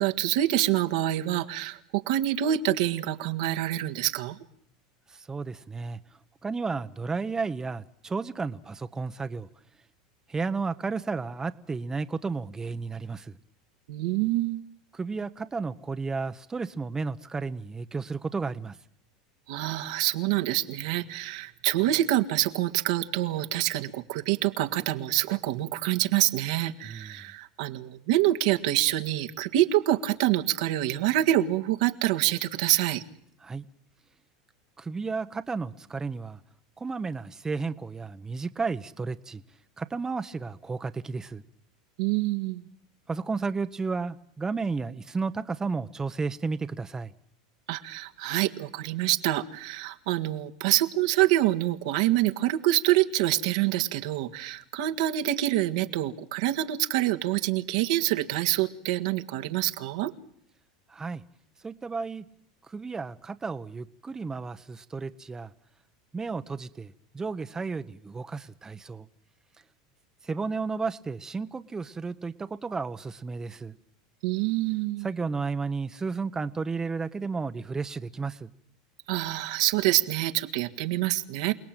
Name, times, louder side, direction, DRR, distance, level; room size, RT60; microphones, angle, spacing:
voice 1, 0.0-4.4 13.9-14.6 19.5-33.0 42.0-42.6 47.7-60.1 74.2-75.1 79.1-81.5, right 14 dB, 70° right, 7 dB, 1.8 m, -26 dB
voice 2, 5.1-6.0 6.4-9.5 10.3-13.4 14.9-18.8 26.8-27.2 33.4-33.7 34.8-36.4 36.8-39.4 39.8-41.4 43.1-47.1 60.9-61.2 61.6-62.2 62.7-65.5 66.1-69.1 70.2-73.7 75.0-78.5, right 4 dB, 15° right, 10 dB, 1.0 m, -33 dB
28.5 x 18.0 x 9.1 m, 0.69 s
hypercardioid pair, 105°, 3 cm